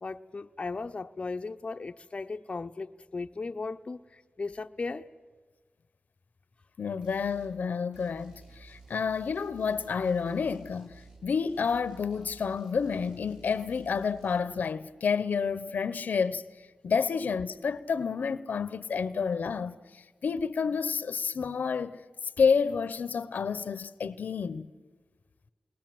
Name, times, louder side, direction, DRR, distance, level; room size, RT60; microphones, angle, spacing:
voice 1, 0.0-5.1, left 3 dB, 40° left, 0.7 m, -37 dB
voice 2, 6.8-16.4 16.8-22.0 22.4-24.7, left 6 dB, 80° left, 0.8 m, -29 dB
sound 1, 7.0-7.5 7.9-11.2 11.5-14.4, right 3 dB, 35° right, 7.8 m, -53 dB
28.5 x 21.0 x 7.7 m
wide cardioid pair, 70°, 3 cm